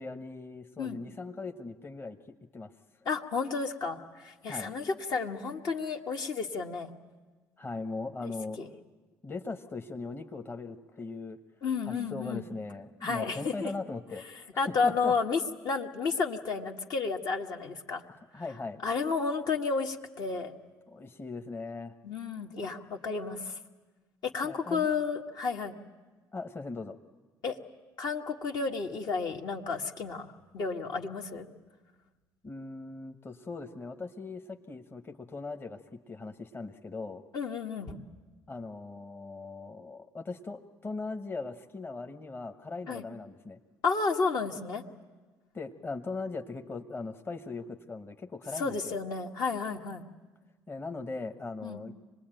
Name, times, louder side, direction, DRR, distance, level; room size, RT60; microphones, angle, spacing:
voice 1, 0.0-2.2 2.5-2.7 4.5-4.7 7.6-8.6 9.2-11.4 11.8-15.1 18.1-18.8 20.9-21.9 24.4-24.9 26.3-27.0 32.4-37.2 38.5-43.6 45.5-49.0 50.7-51.9, left 3 dB, 30° left, 5 dB, 1.2 m, -39 dB
voice 2, 3.0-6.9 8.2-8.7 11.6-12.4 13.0-13.7 14.6-18.0 18.8-20.5 22.0-23.6 24.2-25.8 27.4-27.6 28.0-30.3 30.5-31.5 37.3-38.0 42.9-43.0 43.8-44.8 48.6-50.0 51.6-51.8, left 4 dB, 60° left, 2 dB, 1.6 m, -32 dB
25.0 x 20.0 x 9.1 m, 1.3 s
supercardioid pair, 75°, 8 cm